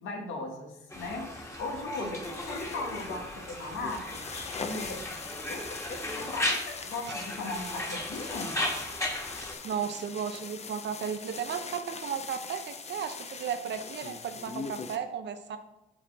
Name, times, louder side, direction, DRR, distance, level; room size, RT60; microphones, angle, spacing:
voice 1, 0.0-4.2 4.5-5.0 5.5-8.5, left 2 dB, 85° left, 1 dB, 1.6 m, -38 dB
Conversation, 0.9-9.5, left 1 dB, 15° left, 1.6 m, -36 dB
sound 1, 2.2-15.0, left 5 dB, 35° left, 0.6 m, -42 dB
voice 2, 9.6-15.6, right 7 dB, 60° right, 9 dB, 0.8 m, -34 dB
5.8 x 4.4 x 6.0 m, 0.92 s
cardioid pair, 90°, 20 cm